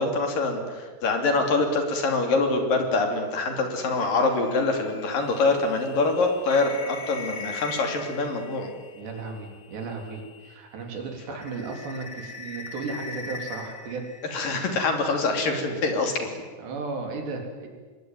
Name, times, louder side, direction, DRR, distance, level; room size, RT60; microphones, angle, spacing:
voice 1, 0.0-8.7 14.3-16.3, left 3 dB, 55° left, 4 dB, 4.4 m, -25 dB
sound 1, 3.8-10.6 11.0-15.0, left 4 dB, 70° left, 0.7 m, -41 dB
voice 2, 8.9-14.1 16.6-17.7, right 4 dB, 75° right, 3 dB, 5.8 m, -35 dB
25.5 x 22.5 x 9.4 m, 1.4 s
omnidirectional pair, 5.0 m